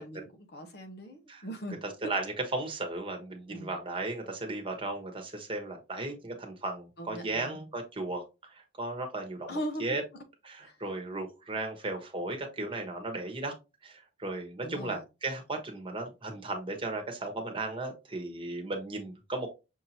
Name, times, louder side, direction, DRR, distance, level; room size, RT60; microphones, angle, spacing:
voice 1, 0.0-2.1 3.5-3.8 7.0-7.6 9.5-9.8 14.6-15.0, right 1 dB, 60° left, 0.9 m, -39 dB
voice 2, 1.8-8.2 8.8-10.0 10.4-13.5 13.8-19.5, right 2 dB, 30° right, 1.2 m, -35 dB
6.3 x 2.8 x 2.9 m
head